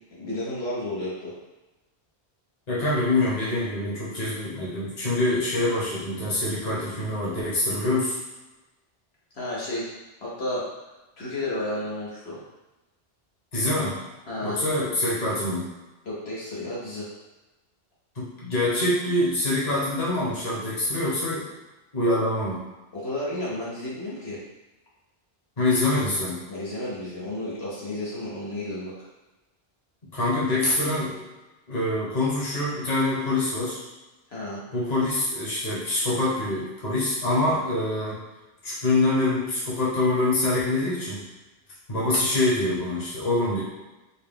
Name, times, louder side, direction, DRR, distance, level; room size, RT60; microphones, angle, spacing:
voice 1, 0.2-1.3 9.3-10.0 10.2-10.7 11.2-12.4 14.3-14.7 16.0-17.1 22.9-24.4 26.5-28.9 34.3-34.6, left 1 dB, 75° left, -7 dB, 1.4 m, -32 dB
voice 2, 2.7-8.1 13.5-14.0 14.4-15.7 18.1-21.5 21.9-22.7 25.6-26.4 30.1-31.2 31.7-33.8 34.7-38.2 38.6-41.3 41.9-43.6, left 2 dB, 40° left, -7 dB, 1.2 m, -25 dB
4.4 x 2.3 x 3.5 m, 1.1 s
omnidirectional pair, 1.1 m